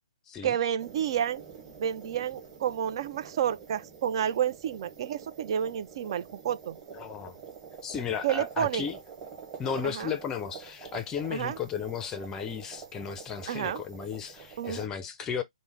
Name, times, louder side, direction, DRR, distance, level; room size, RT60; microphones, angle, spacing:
voice 1, 0.4-1.4 1.8-6.8 8.2-8.9 9.8-10.1 11.3-11.6 13.5-13.8 14.6-14.8, right 9 dB, 50° right, 0.5 m, -30 dB
sound 1, 0.8-14.9, right 6 dB, 25° right, 2.5 m, -47 dB
voice 2, 6.9-7.4 7.8-9.0 9.6-15.4, left 7 dB, 15° left, 0.5 m, -34 dB
5.2 x 2.1 x 3.2 m
hypercardioid pair, 145°, 3 cm